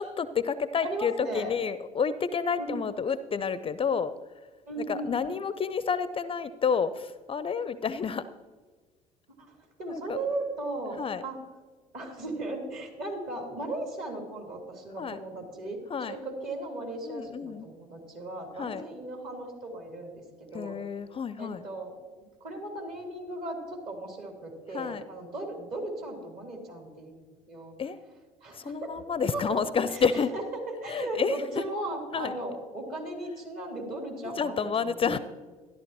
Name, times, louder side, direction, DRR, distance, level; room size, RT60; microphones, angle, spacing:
voice 1, 0.0-4.1 4.8-8.2 9.9-10.2 11.0-11.2 15.0-15.2 15.9-16.2 17.1-17.7 18.6-18.9 20.5-21.7 24.7-25.0 27.8-28.0 28.5-30.3 30.9-31.6 32.1-32.3 34.3-35.2, left 6 dB, 30° left, 15 dB, 0.4 m, -30 dB
voice 2, 0.8-1.6 2.6-2.8 4.7-5.3 9.4-9.5 9.8-11.4 11.9-15.8 16.1-20.7 21.4-22.0 22.4-27.8 28.4-29.0 29.3-29.6 29.9-30.1 30.3-35.2, right 2 dB, 50° right, 1 dB, 3.4 m, -37 dB
13.5 x 11.5 x 3.0 m, 1.4 s
hypercardioid pair, 60°, 19 cm